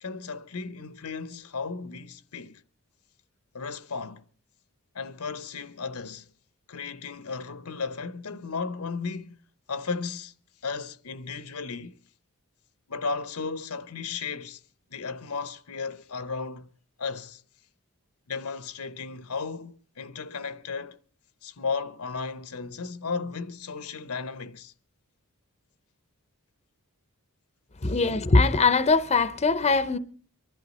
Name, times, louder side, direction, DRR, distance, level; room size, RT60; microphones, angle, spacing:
voice 1, 0.0-2.6 3.5-4.2 4.9-6.3 6.7-9.4 9.7-10.3 10.6-11.9 12.9-14.6 14.9-16.7 17.0-17.4 18.3-21.0 21.4-24.7 27.8-27.9, left 4 dB, 75° left, 0.8 m, -35 dB
voice 2, 27.8-30.0, left 3 dB, 30° left, 0.6 m, -21 dB
25.0 x 11.5 x 4.1 m
head